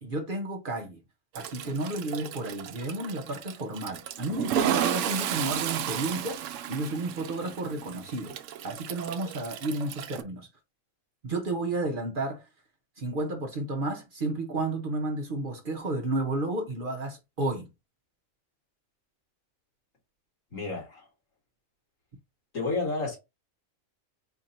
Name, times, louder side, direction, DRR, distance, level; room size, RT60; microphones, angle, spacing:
voice 1, 0.0-1.0 1.3-8.3 8.6-10.5 11.2-12.5 13.0-17.7, right 2 dB, 45° right, 0.9 m, -32 dB
Toilet flush, 1.4-10.2, right 10 dB, 70° right, 0.9 m, -33 dB
voice 2, 20.5-21.1 22.5-23.2, left 3 dB, 75° left, 2.6 m, -30 dB
4.5 x 2.6 x 4.2 m
omnidirectional pair, 1.4 m